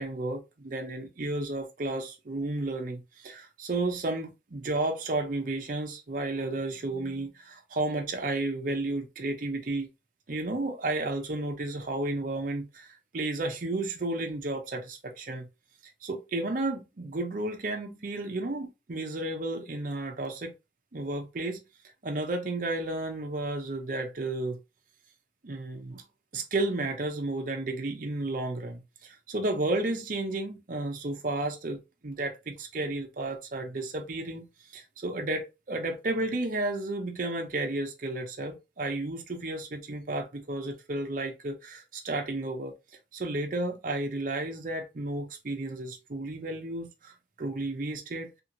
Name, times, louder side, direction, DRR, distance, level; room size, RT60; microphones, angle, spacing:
voice 1, 0.0-9.9 10.3-15.5 16.0-20.5 20.9-21.6 22.0-24.6 25.4-26.0 26.3-34.5 34.7-42.7 43.1-48.3, right 2 dB, 50° right, 0.6 m, -32 dB
2.8 x 2.8 x 2.6 m
head